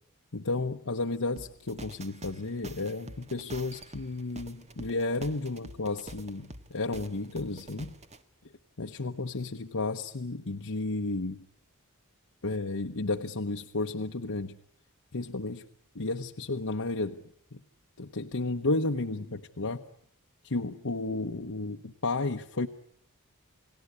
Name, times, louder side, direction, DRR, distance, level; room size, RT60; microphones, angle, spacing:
voice 1, 0.3-7.9 8.8-11.5 12.4-14.6 15.1-15.7 15.9-17.2 17.5-17.6 18.0-19.8 20.4-22.7, left 2 dB, 65° left, 4 dB, 1.1 m, -32 dB
sound 1, 1.4-8.2, right 1 dB, 30° right, 1.6 m, -46 dB
30.0 x 18.5 x 9.7 m, 0.66 s
head